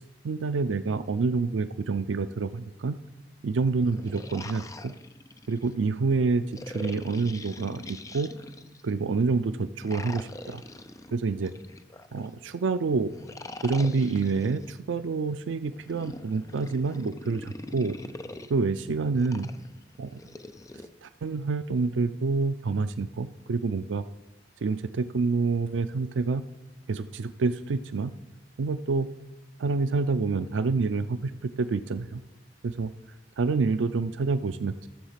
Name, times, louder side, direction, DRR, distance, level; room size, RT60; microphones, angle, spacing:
voice 1, 0.2-2.9 3.4-4.9 5.5-8.3 8.8-10.6 11.1-11.5 12.1-13.1 13.6-18.0 18.5-19.5 20.0-20.2 21.0-24.0 24.6-26.4 26.9-28.1 28.6-29.1 29.6-31.3 31.6-32.2 32.6-32.9 33.4-34.9, right 4 dB, 90° right, 11 dB, 0.4 m, -27 dB
sound 1, 3.8-5.7 6.5-8.9 9.8-12.3 13.1-14.7 15.7-18.5 19.2-20.9, left 2 dB, 15° left, 0.5 m, -43 dB
13.0 x 7.2 x 5.8 m, 1.1 s
head